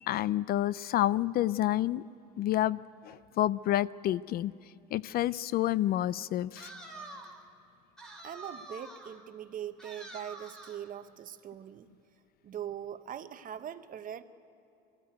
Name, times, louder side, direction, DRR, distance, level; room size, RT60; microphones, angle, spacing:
voice 1, 0.0-2.0 2.4-4.5 4.9-6.7, left 13 dB, 45° left, 20 dB, 0.4 m, -29 dB
sound 1, 6.6-7.5 8.0-9.2 9.8-10.9, right 2 dB, 5° left, 3.1 m, -47 dB
voice 2, 8.2-11.9 12.4-14.2, right 10 dB, 40° right, 11 dB, 0.9 m, -41 dB
21.0 x 15.0 x 9.3 m, 2.8 s
supercardioid pair, 105°, 21 cm